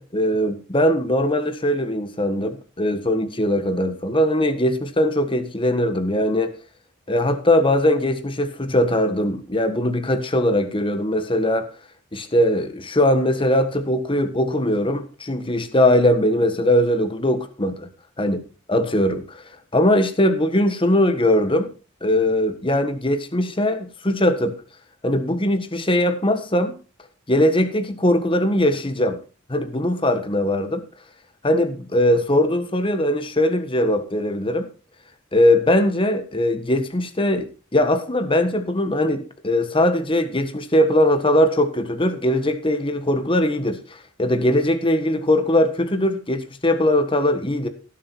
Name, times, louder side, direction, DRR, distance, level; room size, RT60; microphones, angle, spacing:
voice 1, 0.0-6.5 7.1-11.7 12.1-17.9 18.2-18.4 18.7-19.4 19.7-21.7 22.0-24.6 25.0-26.7 27.3-29.2 29.5-30.8 31.4-34.7 35.3-43.8 44.2-47.7, left 1 dB, 25° left, 1.4 m, -20 dB
17.0 x 7.5 x 4.6 m
head